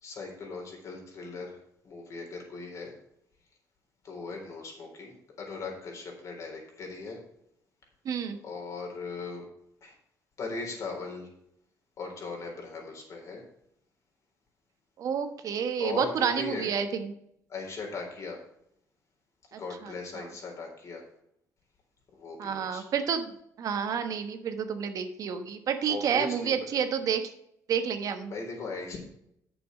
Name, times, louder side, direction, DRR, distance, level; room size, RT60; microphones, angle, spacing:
voice 1, 0.0-1.6 1.8-2.9 4.0-7.2 8.4-9.4 9.8-9.9 10.4-11.3 12.0-13.4 15.8-16.7 17.5-18.4 19.6-21.0 22.1-22.8 25.9-26.8 28.3-29.0, left 3 dB, 50° left, 0 dB, 4.0 m, -38 dB
voice 2, 8.0-8.4 15.0-17.1 19.5-20.2 22.4-23.3 23.6-27.2 27.7-28.3, right 7 dB, 60° right, 8 dB, 1.2 m, -30 dB
8.3 x 7.0 x 6.4 m, 0.75 s
cardioid pair, 100°, 7 cm